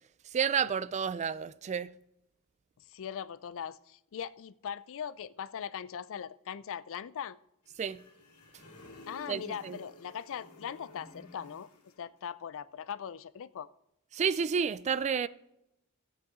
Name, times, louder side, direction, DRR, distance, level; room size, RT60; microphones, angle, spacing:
voice 1, 0.3-1.9 7.8-8.0 9.3-9.8 14.1-15.3, right 6 dB, 30° right, 0.3 m, -30 dB
voice 2, 2.8-7.4 9.1-11.7 12.0-13.7, left 8 dB, 60° left, 0.4 m, -40 dB
sound 1, 7.6-12.0, left 2 dB, 85° left, 2.4 m, -53 dB
15.0 x 8.9 x 3.7 m
head